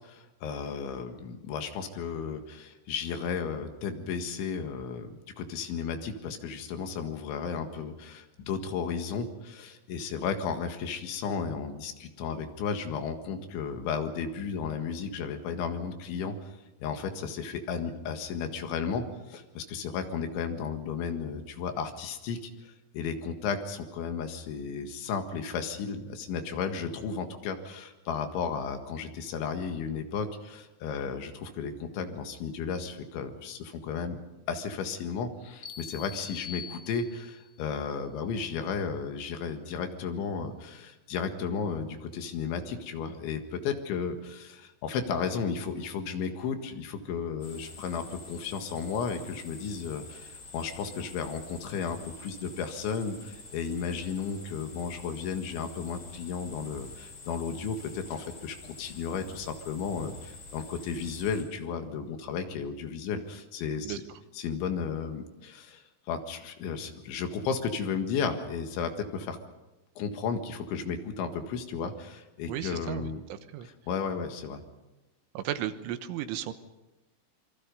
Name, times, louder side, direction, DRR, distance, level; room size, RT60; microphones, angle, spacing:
voice 1, 0.0-34.2 34.5-64.0 64.4-69.4 70.0-73.2 73.9-74.6, left 6 dB, 75° left, 6 dB, 4.1 m, -34 dB
sound 1, 35.6-37.5, left 7 dB, 25° left, 3.3 m, -43 dB
sound 2, 47.4-61.4, left 3 dB, 45° left, 7.4 m, -48 dB
voice 2, 72.5-73.7 75.4-76.5, right 11 dB, 85° right, 10 dB, 3.5 m, -35 dB
26.5 x 24.0 x 5.4 m, 1.0 s
omnidirectional pair, 5.5 m